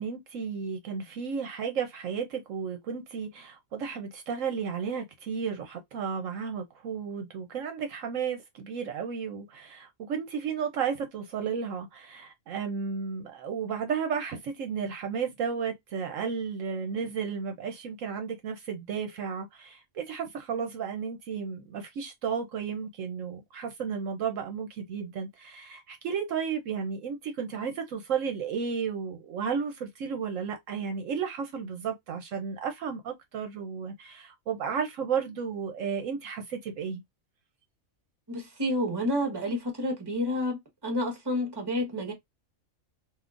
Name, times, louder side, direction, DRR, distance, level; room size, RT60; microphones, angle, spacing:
voice 1, 0.0-37.0, right 6 dB, 70° right, 1.0 m, -33 dB
voice 2, 38.3-42.1, left 1 dB, 20° right, 1.1 m, -30 dB
3.6 x 2.7 x 2.4 m
omnidirectional pair, 1.4 m